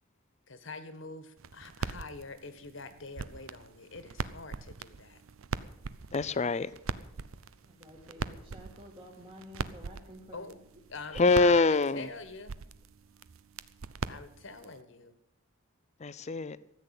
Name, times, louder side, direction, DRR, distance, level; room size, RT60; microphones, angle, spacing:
voice 1, 0.5-5.2 10.3-10.6 10.9-12.5 14.1-15.1, left 3 dB, 60° left, 1.5 m, -45 dB
sound 1, 1.4-14.8, right 4 dB, 75° right, 0.6 m, -42 dB
voice 2, 6.1-6.7 11.1-12.1 16.0-16.6, left 3 dB, 35° left, 0.5 m, -25 dB
voice 3, 7.7-10.6 11.1-11.3, equal, 25° right, 2.1 m, -50 dB
14.0 x 8.4 x 8.3 m
head